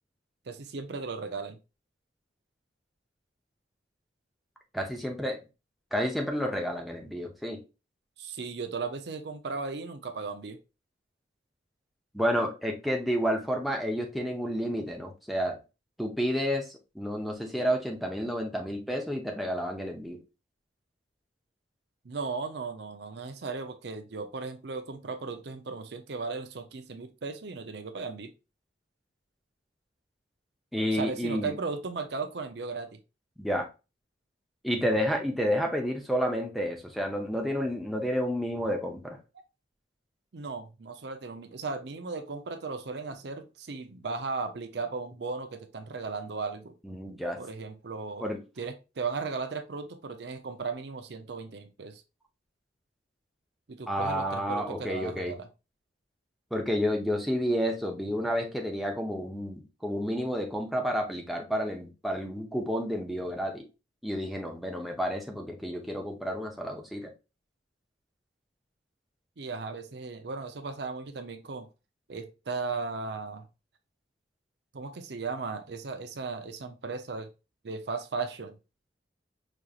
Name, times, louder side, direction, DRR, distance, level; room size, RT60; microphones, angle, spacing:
voice 1, 0.5-1.6 8.2-10.6 22.0-28.3 30.9-32.9 39.3-39.4 40.3-46.7 47.4-48.3 48.6-52.0 53.7-55.5 69.4-71.7 72.1-73.5 74.7-77.3 77.6-78.6, right 4 dB, 60° right, 0.5 m, -36 dB
voice 2, 4.7-5.4 5.9-7.6 12.1-15.6 16.0-16.7 16.9-20.2 30.7-31.5 33.4-33.7 34.6-39.2 46.8-47.4 48.2-48.4 53.9-55.3 56.5-63.7 64.0-67.1, equal, ahead, 0.6 m, -30 dB
5.0 x 2.9 x 2.3 m
head